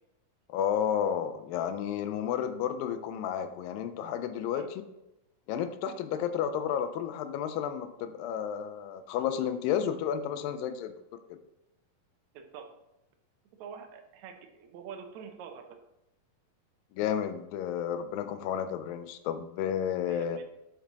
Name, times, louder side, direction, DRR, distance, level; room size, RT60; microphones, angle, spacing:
voice 1, 0.5-4.7 5.5-10.9 11.3-11.4 16.9-20.4, left 9 dB, 85° left, 10 dB, 2.2 m, -31 dB
voice 2, 12.3-12.7 13.6-15.8 20.0-20.4, right 7 dB, 80° right, 4 dB, 1.6 m, -45 dB
8.1 x 4.5 x 4.0 m, 0.89 s
omnidirectional pair, 4.0 m